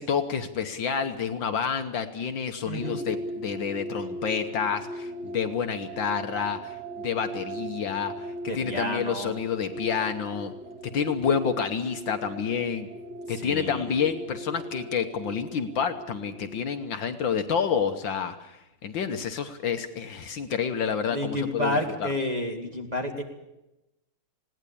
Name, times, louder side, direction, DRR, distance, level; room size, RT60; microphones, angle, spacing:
voice 1, 0.0-10.5 10.8-12.9 13.3-22.1, left 7 dB, 65° left, 8 dB, 1.7 m, -29 dB
voice 2, 2.6-3.0 8.5-9.3 13.3-13.9 21.1-23.2, left 1 dB, 20° right, 3 dB, 2.1 m, -30 dB
sound 1, 2.8-16.7, right 1 dB, 55° right, 0.7 m, -39 dB
20.0 x 17.5 x 8.5 m, 0.94 s
omnidirectional pair, 2.4 m